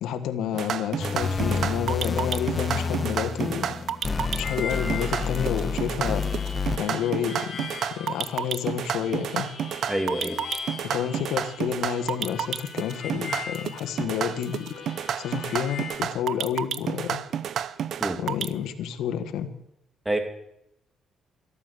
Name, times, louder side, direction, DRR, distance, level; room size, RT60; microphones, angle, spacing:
voice 1, 0.0-3.8 4.3-6.2 6.8-7.6 7.9-9.5 10.9-14.7 15.2-17.2 18.2-19.5, left 9 dB, 85° left, 8 dB, 1.5 m, -29 dB
sound 1, 0.5-18.5, right 9 dB, 65° right, 0.7 m, -30 dB
sound 2, 1.0-6.8, left 4 dB, 30° left, 1.0 m, -29 dB
Harmonica, 4.0-16.0, left 5 dB, 50° left, 4.2 m, -40 dB
voice 2, 9.9-10.4 18.0-18.2 20.0-20.2, right 1 dB, 10° right, 6 dB, 2.7 m, -27 dB
13.5 x 13.5 x 6.8 m, 0.78 s
cardioid pair, 90°, 0 cm